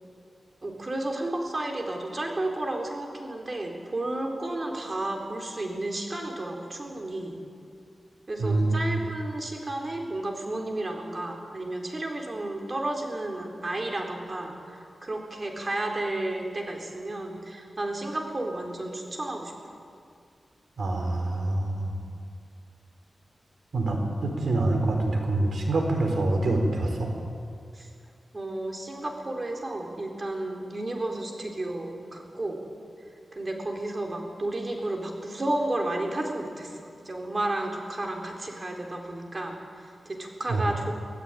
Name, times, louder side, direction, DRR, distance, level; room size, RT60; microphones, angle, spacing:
voice 1, 0.6-7.4 8.3-19.5 27.7-27.9 28.3-32.6 33.3-40.9, right 1 dB, 35° right, 2 dB, 4.1 m, -32 dB
voice 2, 8.4-9.0 20.8-21.9 23.7-27.1 40.5-40.6, right 2 dB, 75° right, 3 dB, 4.7 m, -26 dB
25.0 x 16.5 x 9.3 m, 2.3 s
wide cardioid pair, 90°, 0 cm